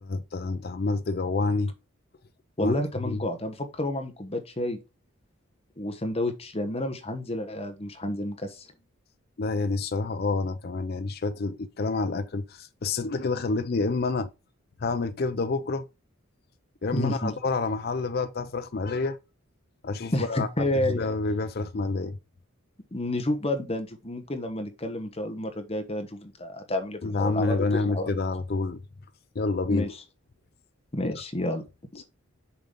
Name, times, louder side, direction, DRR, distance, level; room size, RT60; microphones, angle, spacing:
voice 1, 0.0-1.7 2.6-2.7 3.0-3.2 9.4-14.3 14.8-15.9 16.8-19.2 19.8-22.2 27.0-28.8 29.4-29.9 31.1-31.2, left 3 dB, 45° left, 0.5 m, -28 dB
voice 2, 2.6-4.8 5.8-8.7 16.9-17.4 20.1-21.0 22.9-28.1 29.7-29.9 30.9-31.6 31.9-32.0, left 1 dB, 30° left, 1.0 m, -30 dB
6.9 x 3.8 x 5.3 m
head